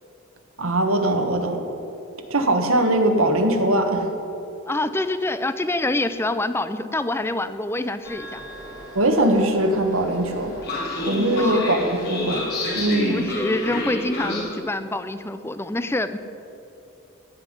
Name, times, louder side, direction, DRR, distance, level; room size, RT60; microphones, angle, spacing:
voice 1, 0.6-1.6 2.3-4.1 8.9-10.5 11.0-12.4 12.7-13.3, right 1 dB, 80° right, 5 dB, 1.6 m, -21 dB
voice 2, 4.7-8.4 11.3-11.6 13.1-16.2, left 2 dB, 10° left, 12 dB, 0.5 m, -26 dB
Train, 8.0-14.4, left 1 dB, 50° left, 3.1 m, -30 dB
16.0 x 5.8 x 9.7 m, 2.8 s
head